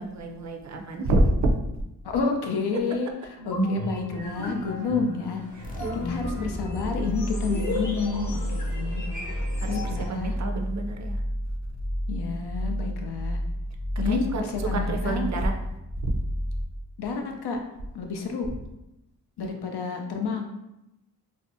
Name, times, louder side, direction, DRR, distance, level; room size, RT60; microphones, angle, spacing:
voice 1, 0.0-1.5 5.6-6.5 9.6-11.2 14.1-14.4 14.7-15.5 16.0-16.2 19.4-19.5, right 2 dB, 45° right, 3 dB, 0.4 m, -28 dB
voice 2, 2.0-3.1 3.5-5.4 6.1-9.0 9.7-10.3 12.1-13.4 14.0-15.3 17.0-17.6 17.9-18.5 19.4-20.4, left 5 dB, 75° left, 3 dB, 0.5 m, -29 dB
sound 1, 3.3-10.1, equal, 45° left, 0.8 m, -34 dB
sound 2, 5.6-17.1, equal, 20° left, 0.4 m, -31 dB
2.6 x 2.1 x 2.6 m, 0.91 s
cardioid pair, 55°, 40 cm